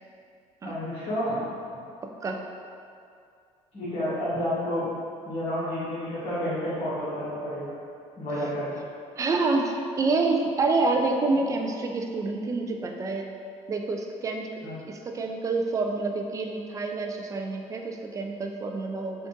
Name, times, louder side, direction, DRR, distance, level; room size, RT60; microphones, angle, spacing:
voice 1, 0.6-1.4 1.7-1.8 3.7-4.9 5.2-7.7 8.2-8.8 14.6-14.8, equal, 50° left, -12 dB, 1.3 m, -30 dB
voice 2, 2.0-2.4 9.2-13.3 13.7-14.5 14.9-19.3, right 3 dB, 25° right, 3 dB, 0.3 m, -27 dB
3.5 x 2.5 x 3.8 m, 2.4 s
cardioid pair, 125°, 13 cm